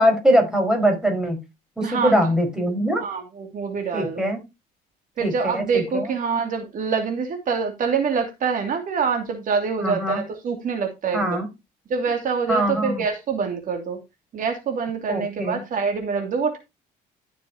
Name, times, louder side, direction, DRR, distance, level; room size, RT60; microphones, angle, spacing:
voice 1, 0.0-1.4 1.8-3.0 3.9-4.4 5.2-6.0 9.8-10.2 11.1-11.5 12.5-13.0 15.1-15.6, equal, 5° right, 3 dB, 5.0 m, -22 dB
voice 2, 1.8-2.1 3.0-4.2 5.2-11.4 11.9-14.0 14.3-16.6, right 5 dB, 55° right, 4 dB, 2.6 m, -25 dB
14.0 x 6.8 x 2.9 m, 0.23 s
cardioid pair, 110°, 17 cm